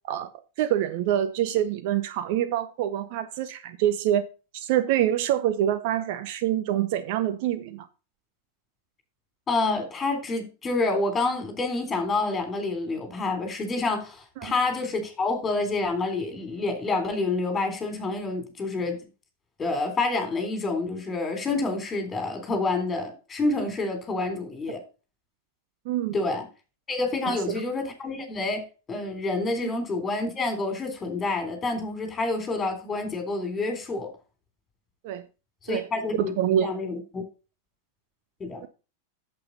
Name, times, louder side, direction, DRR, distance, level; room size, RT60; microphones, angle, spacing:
voice 1, 0.6-4.2 4.5-7.9 14.4-14.5 25.9-26.1 27.3-27.6 29.6-29.7 35.0-35.2 35.7-35.9 36.2-36.8, right 11 dB, 50° right, 0.7 m, -26 dB
voice 2, 9.5-19.0 19.6-24.8 26.1-26.4 26.9-34.1 35.6-36.3 36.6-37.2 38.4-38.6, left 3 dB, 20° left, 3.5 m, -28 dB
8.6 x 7.7 x 4.0 m
figure-of-eight pair, 90°, 0 cm